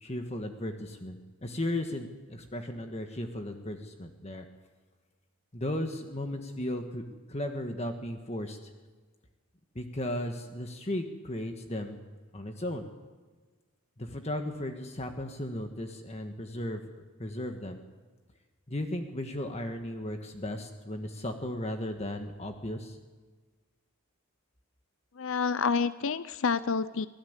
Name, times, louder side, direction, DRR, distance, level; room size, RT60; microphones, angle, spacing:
voice 1, 0.0-4.5 5.5-8.6 9.7-12.0 12.3-12.9 14.0-17.8 18.7-23.0, left 1 dB, 30° left, 5 dB, 1.5 m, -36 dB
voice 2, 25.2-27.1, left 5 dB, 60° left, 14 dB, 0.6 m, -28 dB
24.5 x 16.0 x 8.2 m, 1.4 s
head